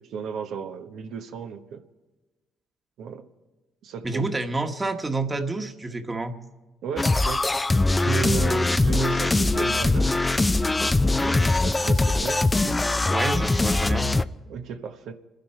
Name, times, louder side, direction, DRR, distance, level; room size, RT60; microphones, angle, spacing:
voice 1, 0.0-1.8 3.0-3.3 3.8-4.3 6.8-7.4 8.0-10.2 11.2-12.8 14.5-15.1, right 6 dB, 75° right, 6 dB, 1.0 m, -34 dB
voice 2, 4.0-6.3 13.1-14.1, right 2 dB, 25° right, 6 dB, 1.5 m, -28 dB
sound 1, 7.0-14.2, left 2 dB, 20° left, 0.5 m, -22 dB
28.0 x 10.5 x 4.5 m, 1.2 s
supercardioid pair, 65°, 0 cm